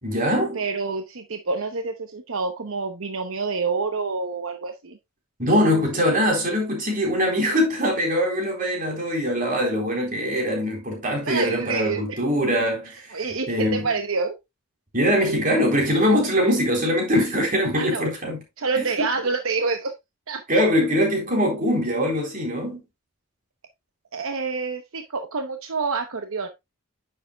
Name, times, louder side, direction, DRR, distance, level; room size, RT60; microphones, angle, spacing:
voice 1, 0.0-0.6 5.4-12.9 13.5-13.9 14.9-18.4 18.8-18.9 20.5-22.8, equal, 40° right, 3.8 m, -22 dB
voice 2, 0.5-5.0 11.2-12.2 13.1-14.3 17.7-18.1 18.6-19.9 20.3-20.4 24.1-26.5, right 4 dB, 75° right, 0.9 m, -27 dB
9.8 x 6.9 x 2.3 m
head